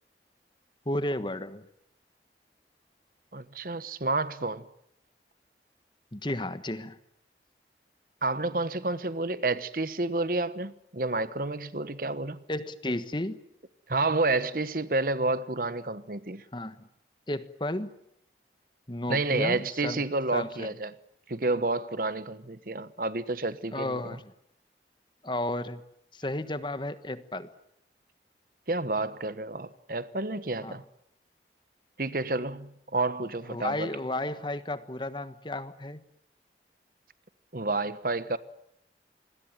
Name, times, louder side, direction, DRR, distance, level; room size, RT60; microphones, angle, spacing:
voice 1, 0.8-1.7 6.1-7.0 12.5-13.4 16.5-16.8 17.3-17.9 18.9-20.0 20.3-20.7 23.7-24.2 25.2-25.8 26.1-27.5 30.6-30.8 33.5-36.0, left 1 dB, 25° left, 1.3 m, -33 dB
voice 2, 3.3-4.7 8.2-12.4 13.9-16.4 19.1-21.0 21.3-24.2 28.7-30.8 32.0-33.9 37.5-38.4, right 2 dB, 50° right, 1.2 m, -30 dB
27.0 x 21.0 x 9.0 m
head